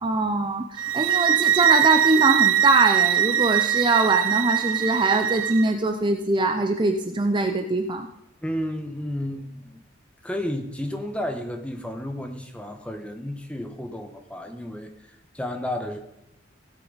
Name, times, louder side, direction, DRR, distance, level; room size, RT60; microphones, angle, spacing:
voice 1, 0.0-8.1, right 2 dB, 25° right, 5 dB, 0.6 m, -22 dB
sound 1, 0.8-5.7, right 10 dB, 80° right, 0.5 m, -22 dB
voice 2, 8.4-9.8 10.2-14.9 15.3-16.0, left 1 dB, 5° left, 5 dB, 1.1 m, -32 dB
16.0 x 8.4 x 4.0 m, 0.86 s
head